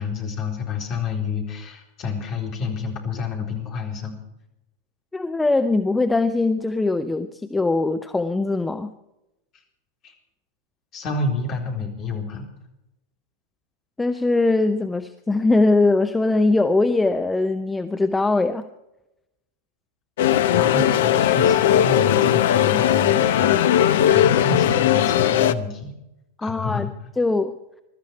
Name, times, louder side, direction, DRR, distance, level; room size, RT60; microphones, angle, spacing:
voice 1, 0.0-4.2 10.0-10.1 10.9-12.5 20.5-25.9 26.4-26.9, left 4 dB, 35° left, 1 dB, 4.1 m, -29 dB
voice 2, 5.1-8.9 14.0-18.6 26.4-26.9 27.2-27.6, left 2 dB, 10° left, 8 dB, 0.7 m, -21 dB
sound 1, 20.2-25.5, left 10 dB, 55° left, 0.7 m, -18 dB
22.5 x 13.0 x 4.7 m, 0.91 s
figure-of-eight pair, 90°, 0 cm